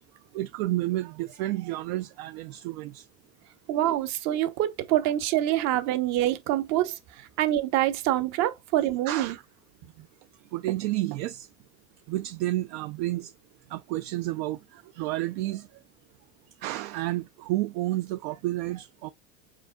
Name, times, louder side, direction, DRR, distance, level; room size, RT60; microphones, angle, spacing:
voice 1, 0.3-3.1 9.1-9.4 10.5-11.5 12.1-13.3 13.7-15.8 16.6-19.1, right 16 dB, 70° right, 0.5 m, -31 dB
voice 2, 3.7-7.0 7.4-9.4, right 13 dB, 50° right, 0.9 m, -25 dB
4.9 x 4.4 x 2.2 m
cardioid pair, 160°, 34 cm